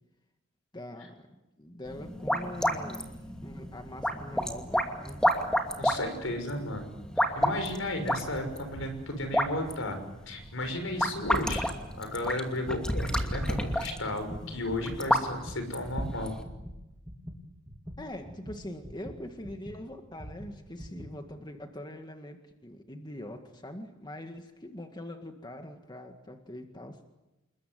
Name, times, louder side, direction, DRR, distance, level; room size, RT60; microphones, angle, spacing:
voice 1, 0.7-1.3 1.6-3.1 3.4-5.3 18.0-27.0, left 1 dB, 20° left, 5 dB, 1.9 m, -43 dB
sound 1, 1.9-16.4, equal, 5° left, 2.6 m, -31 dB
voice 2, 5.8-7.0 7.3-10.0 10.3-11.7 12.0-16.3, left 1 dB, 75° left, 7 dB, 6.3 m, -34 dB
sound 2, 12.9-19.8 20.2-21.1, equal, 10° right, 3.3 m, -44 dB
28.5 x 21.5 x 9.5 m, 0.99 s
head